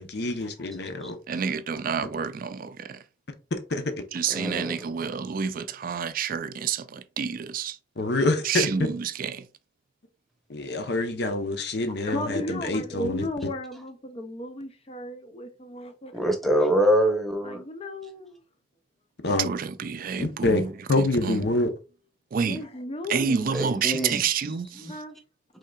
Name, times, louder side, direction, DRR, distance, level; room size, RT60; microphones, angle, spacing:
voice 1, 0.0-1.2 3.7-3.9 8.0-8.9 10.5-13.3 19.2-19.5 20.2-20.6 20.9-21.7, left 2 dB, 65° left, 0.8 m, -26 dB
voice 2, 0.6-0.9 12.1-16.1 17.4-18.4 22.4-23.5 24.9-25.2, left 1 dB, 35° left, 0.5 m, -35 dB
voice 3, 1.3-3.0 4.1-7.8 8.4-9.5 19.4-21.5 22.3-22.6 23.1-25.0, right 6 dB, 50° right, 0.4 m, -29 dB
voice 4, 4.3-4.7 16.1-17.6 23.5-24.2 24.8-24.9, equal, ahead, 1.0 m, -24 dB
5.5 x 3.8 x 2.3 m
head